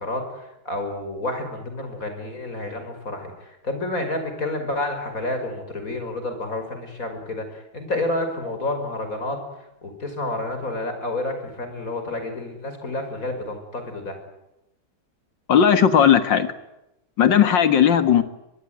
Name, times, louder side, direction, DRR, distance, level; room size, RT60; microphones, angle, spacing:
voice 1, 0.0-3.3 3.6-9.4 9.8-14.2, left 2 dB, 40° left, 7 dB, 6.0 m, -29 dB
voice 2, 15.5-16.5 17.2-18.2, left 8 dB, 65° left, 11 dB, 2.3 m, -16 dB
24.5 x 21.5 x 9.5 m, 0.86 s
omnidirectional pair, 2.2 m